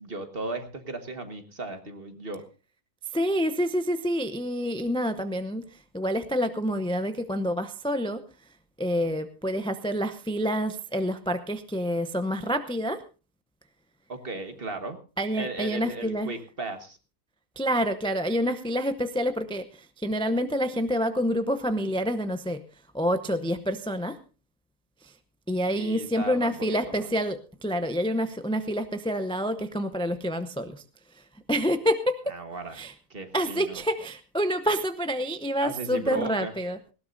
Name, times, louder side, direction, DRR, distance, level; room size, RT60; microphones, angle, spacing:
voice 1, 0.0-2.4 14.1-15.0 15.3-17.0 25.7-27.1 32.3-32.8 33.1-33.8 35.6-36.6, right 2 dB, 40° right, 7 dB, 1.6 m, -36 dB
voice 2, 3.1-5.6 5.9-8.2 8.8-13.0 15.2-16.3 17.6-19.7 20.0-22.6 22.9-24.2 25.5-30.8 31.5-32.3 32.7-32.9 33.3-36.8, equal, 5° left, 9 dB, 0.4 m, -27 dB
19.0 x 16.5 x 2.7 m, 0.33 s
omnidirectional pair, 1.6 m